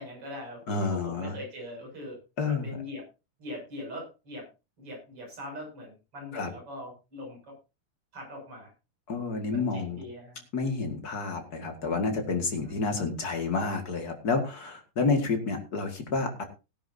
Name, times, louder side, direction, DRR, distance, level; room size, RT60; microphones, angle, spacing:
voice 1, 0.0-2.2 2.5-3.0 3.4-4.5 4.8-7.5 8.1-8.7 9.5-10.4 12.7-12.8, left 1 dB, 35° right, 0 dB, 7.9 m, -42 dB
voice 2, 0.7-1.4 2.4-2.8 6.3-6.5 9.1-10.0 10.5-16.4, left 4 dB, 35° left, 4 dB, 1.5 m, -29 dB
18.0 x 11.0 x 2.8 m, 0.29 s
omnidirectional pair, 4.6 m